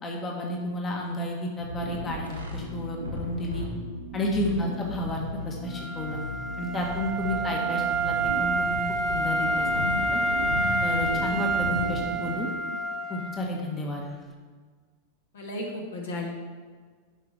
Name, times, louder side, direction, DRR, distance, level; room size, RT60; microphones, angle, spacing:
voice 1, 0.0-3.7 4.1-6.2 6.6-8.8 9.1-10.2 10.8-12.5 13.1-14.0, left 1 dB, 20° left, 0 dB, 1.3 m, -31 dB
sound 1, 1.6-12.2, equal, 85° right, 1.4 m, -35 dB
voice 2, 4.5-4.9 7.3-7.5 15.3-16.3, left 2 dB, 60° left, 0 dB, 1.6 m, -35 dB
Wind instrument woodwind instrument, 5.7-13.5, right 2 dB, 10° right, 1.0 m, -28 dB
11.0 x 5.9 x 3.4 m, 1.5 s
figure-of-eight pair, 90°, 0 cm